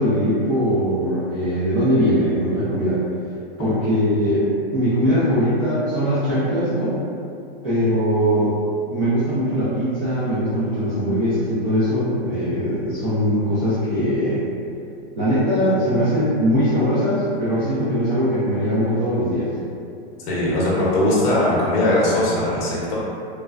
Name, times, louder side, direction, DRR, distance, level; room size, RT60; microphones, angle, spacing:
voice 1, 0.0-3.0 3.6-6.9 7.6-8.5 8.9-14.4 15.2-19.5, equal, 25° right, -13 dB, 0.4 m, -21 dB
voice 2, 20.2-23.0, left 1 dB, 40° left, -6 dB, 0.7 m, -20 dB
3.1 x 2.2 x 2.4 m, 2.6 s
supercardioid pair, 170°, 30 cm